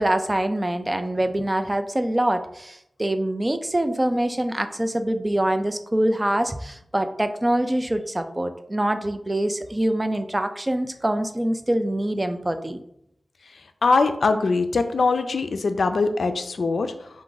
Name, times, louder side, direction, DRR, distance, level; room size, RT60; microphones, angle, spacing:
voice 1, 0.0-12.8, right 1 dB, 20° right, 8 dB, 0.4 m, -24 dB
voice 2, 13.8-17.1, left 3 dB, 85° left, 8 dB, 0.3 m, -22 dB
4.6 x 2.5 x 3.8 m, 0.75 s
wide cardioid pair, 95°, 0 cm